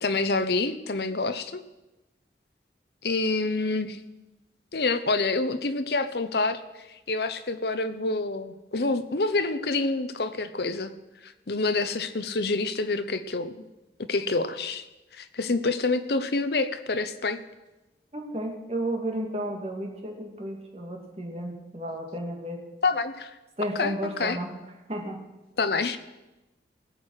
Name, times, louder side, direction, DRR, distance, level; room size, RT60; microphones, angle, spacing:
voice 1, 0.0-1.6 3.0-4.0 4.7-6.6 7.1-10.9 11.2-13.6 14.1-14.8 15.1-17.4 22.8-23.3 23.8-23.9 24.2-24.4 25.6-26.0, left 3 dB, 65° left, 10 dB, 0.8 m, -27 dB
voice 2, 18.1-22.6 23.6-24.5 24.9-25.2, right 1 dB, 35° right, 2 dB, 2.2 m, -33 dB
18.5 x 7.7 x 6.4 m, 1.0 s
head